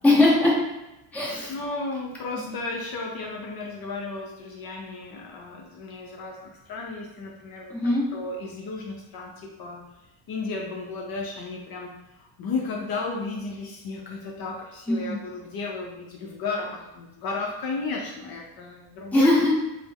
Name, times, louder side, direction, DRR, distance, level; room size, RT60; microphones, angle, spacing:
voice 1, 0.0-0.5 1.1-1.6 2.4-2.5 7.7-8.0 14.9-15.2 19.1-19.5, left 2 dB, 5° left, -5 dB, 0.7 m, -20 dB
voice 2, 1.5-6.4 6.7-9.8 10.3-11.9 12.4-19.3, left 3 dB, 50° left, -1 dB, 0.6 m, -34 dB
3.2 x 2.0 x 3.4 m, 0.96 s
cardioid pair, 125°, 46 cm